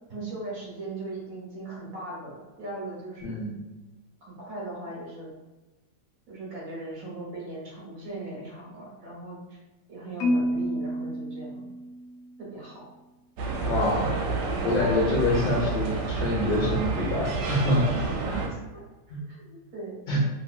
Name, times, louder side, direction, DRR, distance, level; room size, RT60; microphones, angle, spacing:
voice 1, 0.1-3.3 4.2-5.3 6.3-9.6 9.9-11.7 12.4-12.8 17.9-18.8 19.1-20.0, right 2 dB, 55° right, -6 dB, 1.3 m, -39 dB
voice 2, 3.2-3.5 13.6-14.1 14.6-17.9 19.1-19.2 20.1-20.2, left 1 dB, 35° left, -5 dB, 0.9 m, -25 dB
Marimba xylophone, 10.2-12.4, equal, 70° left, 0.8 m, -29 dB
sound 1, 13.4-18.5, right 3 dB, 80° right, 1.2 m, -29 dB
2.9 x 2.8 x 2.3 m, 1.1 s
omnidirectional pair, 1.8 m